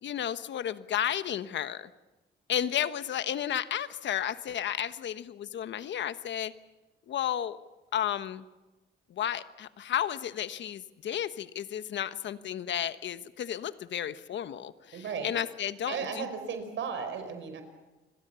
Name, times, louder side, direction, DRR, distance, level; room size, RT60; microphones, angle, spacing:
voice 1, 0.0-1.9 2.5-6.5 7.1-7.6 7.9-8.4 9.1-16.2, left 10 dB, 65° left, 13 dB, 1.2 m, -33 dB
voice 2, 14.9-15.3 15.9-17.6, right 6 dB, 70° right, 8 dB, 5.0 m, -35 dB
28.5 x 22.0 x 7.0 m, 1.1 s
cardioid pair, 90°, 20 cm